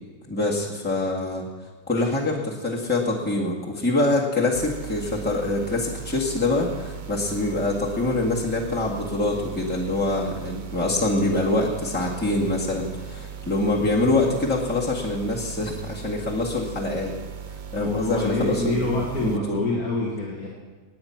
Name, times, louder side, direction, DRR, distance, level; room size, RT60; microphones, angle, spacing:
voice 1, 0.3-1.5 1.9-17.1 17.7-18.9 19.2-19.6, left 2 dB, 5° left, -4 dB, 1.9 m, -25 dB
sound 1, 4.5-19.4, right 8 dB, 45° right, 0.7 m, -38 dB
voice 2, 17.7-20.5, left 2 dB, 90° left, -4 dB, 2.4 m, -26 dB
18.0 x 9.5 x 5.9 m, 1.3 s
omnidirectional pair, 1.5 m